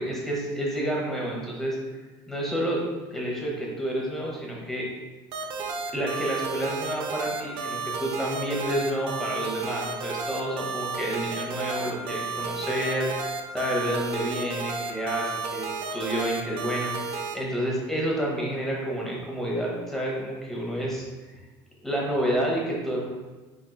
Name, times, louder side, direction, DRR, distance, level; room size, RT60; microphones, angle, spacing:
voice 1, 0.0-1.8 2.3-2.8 3.1-4.9 5.9-13.3 13.5-21.1 21.8-23.0, equal, 5° left, -3 dB, 0.9 m, -29 dB
sound 1, 5.3-17.3, right 4 dB, 55° right, 0.6 m, -32 dB
4.3 x 3.7 x 2.3 m, 1.3 s
cardioid pair, 130°, 11 cm